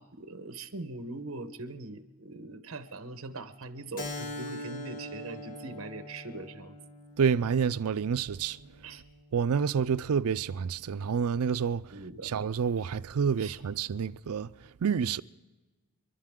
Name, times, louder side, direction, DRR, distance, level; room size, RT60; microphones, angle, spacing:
voice 1, 0.0-6.8 8.8-9.0 11.9-12.3 13.4-13.6, right 2 dB, 65° right, 1.1 m, -41 dB
Keyboard (musical), 4.0-9.1, left 1 dB, 40° left, 1.4 m, -42 dB
voice 2, 7.2-8.6 9.3-11.8 12.2-14.5 14.8-15.2, right 6 dB, 85° right, 0.4 m, -28 dB
30.0 x 11.5 x 3.7 m
head